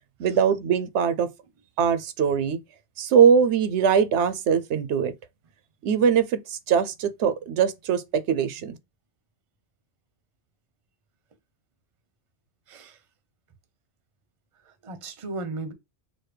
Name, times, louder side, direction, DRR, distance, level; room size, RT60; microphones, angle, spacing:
voice 1, 0.2-1.3 1.8-2.6 3.0-5.1 5.8-8.8, right 7 dB, 90° right, 0.9 m, -22 dB
voice 2, 12.7-13.0 14.6-15.7, right 2 dB, 35° right, 0.6 m, -36 dB
6.2 x 2.2 x 3.2 m
omnidirectional pair, 1.1 m